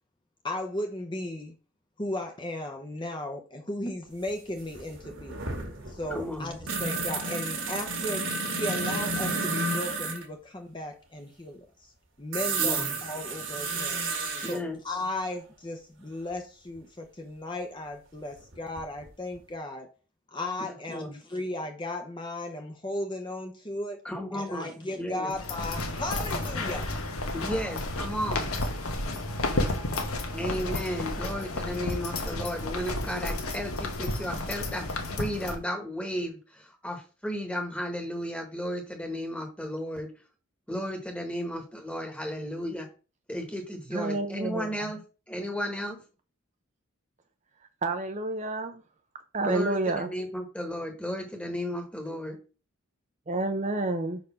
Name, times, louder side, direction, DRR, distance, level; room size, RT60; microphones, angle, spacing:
voice 1, 0.4-1.5 2.0-5.4 5.9-8.2 8.6-11.9 12.2-14.0 14.5-19.9 20.3-24.0 24.3-26.9, left 1 dB, 20° left, 0.8 m, -35 dB
sound 1, 4.3-4.4 4.6-10.2 12.3-14.6 16.8-16.9 18.4-19.1 19.4-19.5, right 3 dB, 60° right, 1.7 m, -31 dB
voice 2, 6.1-6.6 12.6-12.9 14.4-14.8 20.9-21.2 24.0-25.3 27.3-28.5 30.3-34.9 35.2-40.1 40.7-42.9 43.3-45.0 45.3-46.0 49.4-52.4, equal, 5° left, 1.4 m, -34 dB
sound 2, 25.3-35.6, left 2 dB, 85° left, 1.3 m, -32 dB
voice 3, 43.9-44.8 47.8-48.8 49.3-50.1 53.3-54.2, right 2 dB, 30° right, 0.5 m, -29 dB
5.0 x 4.2 x 5.6 m
head